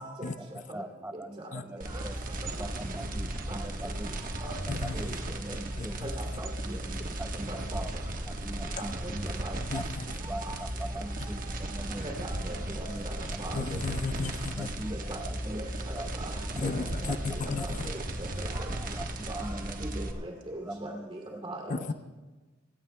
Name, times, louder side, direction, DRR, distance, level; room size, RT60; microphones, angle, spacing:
voice 1, 0.4-2.2 2.6-4.2 4.8-6.0 6.4-7.9 8.3-9.8 10.3-12.1 12.7-13.9 14.5-16.1 16.7-16.8 17.1-17.2 17.6-18.0 18.8-20.1 20.7-21.7, right 1 dB, 10° right, 0.6 m, -42 dB
sound 1, 1.8-20.1, right 1 dB, 45° right, 1.3 m, -36 dB
voice 2, 4.7-5.2 5.8-6.1 9.7-10.2 13.5-14.7 16.6-17.8 21.7-21.9, left 4 dB, 40° left, 0.6 m, -34 dB
voice 3, 7.5-7.8 9.0-9.1 9.4-9.5 10.5-10.6 12.2-13.1 13.4-13.6 15.1-15.2 15.5-15.6 16.1-16.3 16.7-17.1 18.4-18.6 19.3-19.5 20.0-21.8, right 1 dB, 25° right, 2.7 m, -40 dB
23.0 x 17.5 x 2.2 m
head